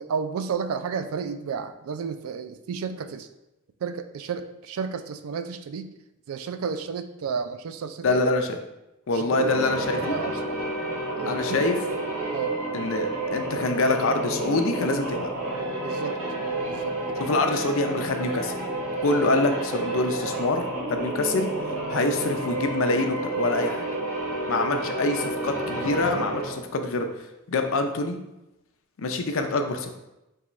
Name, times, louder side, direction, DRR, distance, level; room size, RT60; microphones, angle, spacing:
voice 1, 0.0-3.3 3.8-5.9 6.3-8.2 9.1-9.6 10.0-10.6 11.2-11.7 12.3-12.6 15.8-16.2 16.6-17.0, right 6 dB, 75° right, 10 dB, 0.3 m, -32 dB
voice 2, 8.0-8.6 9.1-10.0 11.2-11.8 12.7-15.3 17.2-18.5 18.9-21.5 21.9-23.8 24.5-27.1 27.5-28.2 29.0-29.9, left 2 dB, 65° left, 5 dB, 0.5 m, -25 dB
sound 1, 9.2-26.7, right 2 dB, 90° right, 1.0 m, -30 dB
3.6 x 2.9 x 4.1 m, 0.93 s
head